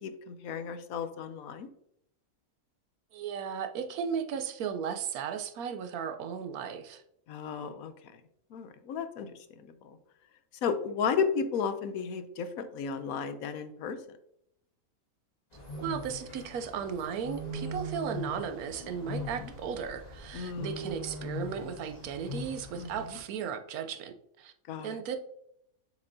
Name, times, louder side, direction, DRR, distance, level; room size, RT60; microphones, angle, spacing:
voice 1, 0.0-1.7 7.3-7.9 8.5-9.3 9.8-10.0 10.6-14.0 20.3-20.8 22.8-22.9 24.7-25.0, left 6 dB, 75° left, 10 dB, 1.1 m, -33 dB
voice 2, 3.1-7.0 15.8-24.5 24.8-25.2, right 7 dB, 80° right, 8 dB, 1.1 m, -36 dB
sound 1, 15.5-23.2, left 1 dB, 25° left, 1.9 m, -41 dB
7.2 x 6.3 x 2.7 m, 0.75 s
omnidirectional pair, 1.5 m